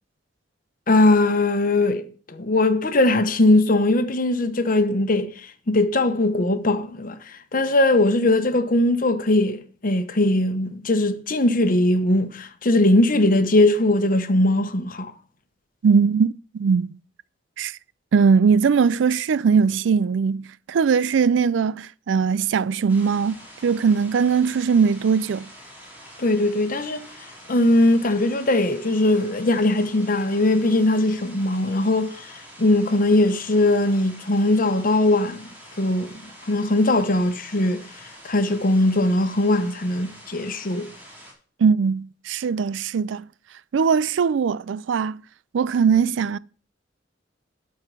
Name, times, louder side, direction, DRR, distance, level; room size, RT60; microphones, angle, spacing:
voice 1, 0.9-15.1 26.2-27.1 27.5-35.4 35.8-36.1 36.5-37.8 38.2-40.9, left 2 dB, 50° left, 1.0 m, -20 dB
voice 2, 15.8-16.9 17.6-17.8 18.1-25.5 41.6-43.3 43.7-45.2 45.5-46.4, right 6 dB, 90° right, 0.4 m, -20 dB
sound 1, 22.9-41.3, equal, 10° right, 3.3 m, -45 dB
12.0 x 4.7 x 6.2 m
head